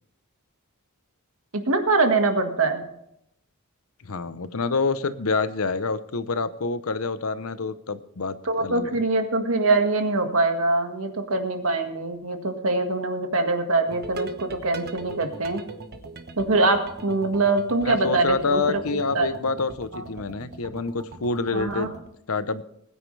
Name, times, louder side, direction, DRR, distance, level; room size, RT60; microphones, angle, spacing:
voice 1, 1.5-2.8 8.4-15.6 16.4-19.3 19.9-20.0 21.5-21.9, right 3 dB, 70° right, 5 dB, 1.8 m, -23 dB
voice 2, 4.1-8.9 17.8-21.9 22.3-22.6, left 4 dB, 75° left, 14 dB, 0.8 m, -27 dB
sound 1, 13.9-22.1, right 3 dB, 45° right, 1.1 m, -41 dB
20.5 x 9.5 x 3.3 m, 0.77 s
head